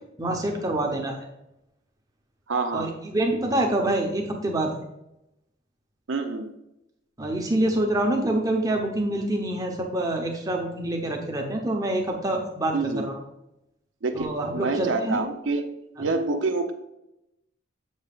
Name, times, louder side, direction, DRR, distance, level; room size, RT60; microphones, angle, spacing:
voice 1, 0.2-1.2 2.7-4.7 7.2-13.1 14.1-15.2 16.0-16.1, right 1 dB, 20° right, 1 dB, 0.9 m, -26 dB
voice 2, 2.5-2.9 6.1-6.5 12.7-13.1 14.0-15.6 16.0-16.7, right 3 dB, 80° right, 6 dB, 0.7 m, -27 dB
8.0 x 5.2 x 2.5 m, 0.87 s
head